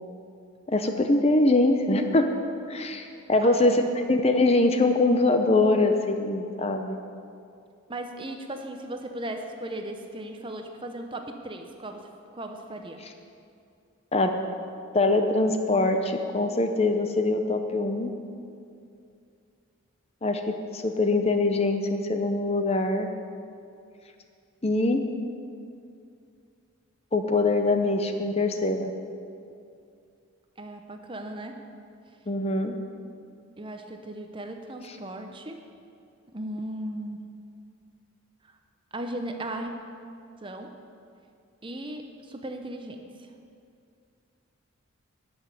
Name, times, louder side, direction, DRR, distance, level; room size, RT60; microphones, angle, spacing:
voice 1, 0.7-2.3 2.7-7.0 14.1-14.3 14.9-18.1 20.2-23.1 24.6-25.0 27.1-28.9 32.3-32.8, left 2 dB, 30° left, 6 dB, 0.7 m, -23 dB
voice 2, 3.4-3.9 7.9-13.0 30.6-31.6 33.6-35.7 36.3-37.2 38.4-38.6 38.9-39.7 40.4-40.7 41.6-43.3, right 1 dB, 25° right, 5 dB, 0.8 m, -37 dB
12.5 x 6.2 x 9.6 m, 2.5 s
head